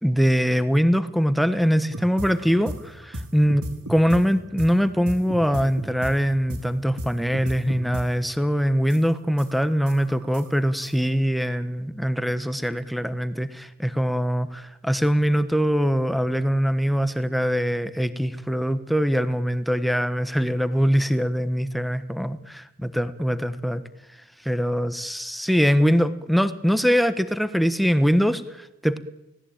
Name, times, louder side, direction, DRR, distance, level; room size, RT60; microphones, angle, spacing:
voice 1, 0.0-3.6 3.9-23.8 24.4-29.0, equal, ahead, 12 dB, 1.2 m, -22 dB
sound 1, 1.9-4.2 4.6-4.7 5.1-6.1 6.5-6.6 7.0-7.1 7.3-8.0 8.4-8.5 8.9-10.9, right 1 dB, 90° right, 3.7 m, -33 dB
30.0 x 18.5 x 9.0 m, 0.92 s
head